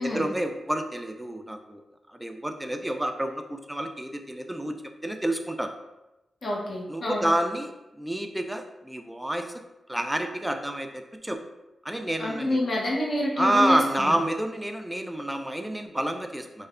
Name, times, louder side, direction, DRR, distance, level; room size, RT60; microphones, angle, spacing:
voice 1, 0.0-1.8 2.1-4.7 5.0-5.7 6.9-9.6 9.9-11.4 11.8-12.6 13.4-16.7, right 1 dB, 10° right, 6 dB, 0.3 m, -29 dB
voice 2, 6.4-7.2 12.2-14.2, left 1 dB, 55° left, -3 dB, 0.7 m, -27 dB
3.1 x 2.1 x 2.4 m, 0.99 s
cardioid pair, 60°, 0 cm